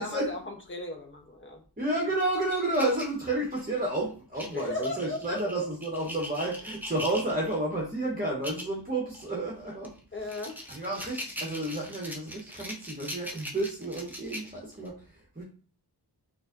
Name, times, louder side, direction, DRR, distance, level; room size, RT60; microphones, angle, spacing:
voice 1, 0.0-1.6 4.5-5.4 10.1-10.6, left 2 dB, 30° left, 2 dB, 0.9 m, -36 dB
voice 2, 1.8-9.9 10.7-15.4, right 2 dB, 20° right, -2 dB, 1.1 m, -31 dB
sound 1, 2.2-3.8 4.4-7.6 8.3-8.7 9.1-9.3 9.8-14.9, equal, 5° right, 0.8 m, -41 dB
4.7 x 2.6 x 2.6 m, 0.40 s
wide cardioid pair, 80°, 40 cm